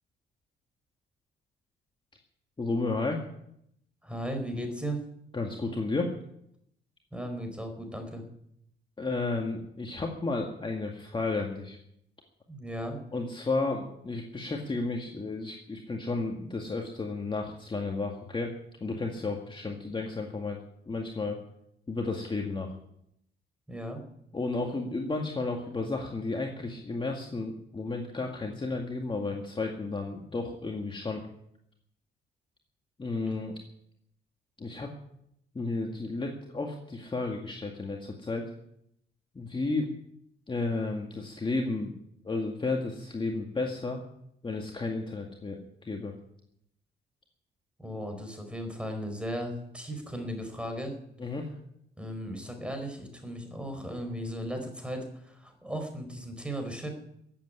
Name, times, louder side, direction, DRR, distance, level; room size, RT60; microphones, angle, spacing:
voice 1, 2.6-3.2 5.3-6.1 9.0-11.8 13.1-18.5 18.8-21.4 21.9-22.7 24.3-31.2 33.0-33.5 34.6-34.9 35.5-38.4 39.4-39.9 40.5-42.0 42.2-44.0 44.4-46.1 51.2-51.5, left 3 dB, 25° left, 1 dB, 2.1 m, -32 dB
voice 2, 4.0-5.0 7.1-8.2 12.5-13.0 23.7-24.0 47.8-51.0 52.0-56.9, equal, 5° right, 5 dB, 4.9 m, -36 dB
15.0 x 8.6 x 9.7 m, 0.74 s
cardioid pair, 90°, 20 cm